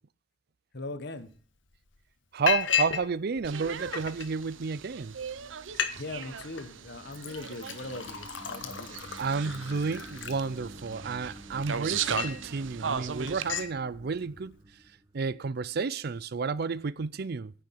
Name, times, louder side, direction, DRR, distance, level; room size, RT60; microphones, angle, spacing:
voice 1, 0.7-1.3 5.9-9.1, left 2 dB, 60° left, 1.4 m, -40 dB
Liquid, 1.3-1.4 1.7-2.0 2.5-3.1 3.4-4.3 4.9-5.0 5.3-5.4 5.6-5.9 6.2-6.6 7.1-10.9 11.5-12.5 12.9-13.0 13.3-13.7, left 8 dB, 80° left, 1.5 m, -33 dB
voice 2, 2.3-5.2 9.2-14.6 15.1-17.5, right 5 dB, 55° right, 0.5 m, -31 dB
sound 1, 3.4-13.5, right 7 dB, 85° right, 0.8 m, -38 dB
sound 2, 6.7-15.6, equal, 20° right, 1.1 m, -49 dB
9.9 x 6.6 x 8.4 m
head